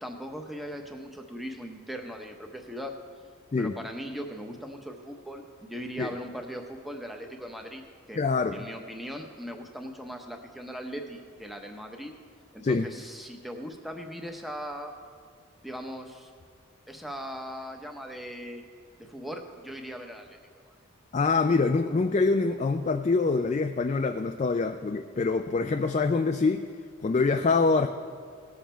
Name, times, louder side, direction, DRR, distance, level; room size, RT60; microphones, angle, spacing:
voice 1, 0.0-2.9 3.6-7.8 8.1-8.2 8.5-12.1 12.5-14.9 15.6-16.3 16.9-18.6 19.0-20.4 20.7-20.8, equal, ahead, 3 dB, 0.8 m, -39 dB
voice 2, 8.2-8.7 12.6-12.9 21.1-26.7 27.0-27.9, left 4 dB, 35° left, 6 dB, 0.3 m, -25 dB
18.0 x 7.2 x 4.4 m, 2.1 s
head